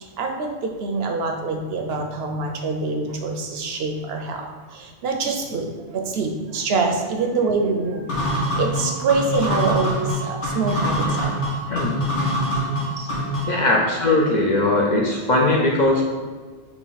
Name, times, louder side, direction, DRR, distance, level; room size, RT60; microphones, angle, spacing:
voice 1, 0.2-11.3, right 3 dB, 65° right, 3 dB, 0.8 m, -25 dB
sound 1, 8.1-13.6, equal, 85° left, 1.3 m, -24 dB
voice 2, 13.5-16.0, left 2 dB, 55° left, -2 dB, 0.5 m, -20 dB
4.0 x 2.9 x 3.9 m, 1.4 s
omnidirectional pair, 1.2 m